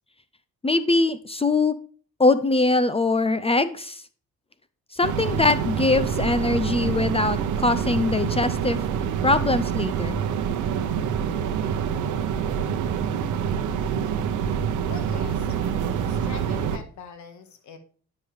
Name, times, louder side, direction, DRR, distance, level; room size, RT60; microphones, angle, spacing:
voice 1, 0.6-1.7 2.2-4.0 4.9-8.8 9.2-10.2, left 3 dB, 20° left, 13 dB, 0.5 m, -22 dB
sound 1, 4.9-16.0, right 1 dB, ahead, 2.3 m, -45 dB
sound 2, 5.0-16.8, right 8 dB, 85° right, 1.0 m, -26 dB
voice 2, 14.9-17.8, left 5 dB, 70° left, 8 dB, 1.6 m, -43 dB
9.5 x 5.5 x 3.4 m, 0.42 s
cardioid pair, 90°, 30 cm